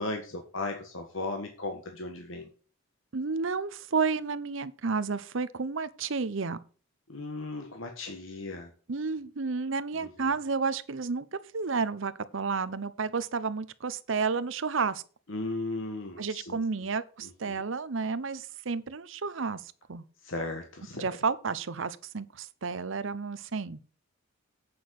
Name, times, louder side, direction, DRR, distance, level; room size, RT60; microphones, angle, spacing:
voice 1, 0.0-2.5 7.1-8.7 10.0-10.1 15.3-16.6 17.5-17.6 20.2-21.1, left 2 dB, 70° left, 1.5 m, -36 dB
voice 2, 3.1-6.6 8.9-15.0 16.2-20.0 20.9-23.8, right 4 dB, 65° right, 0.7 m, -31 dB
8.5 x 6.2 x 6.3 m
head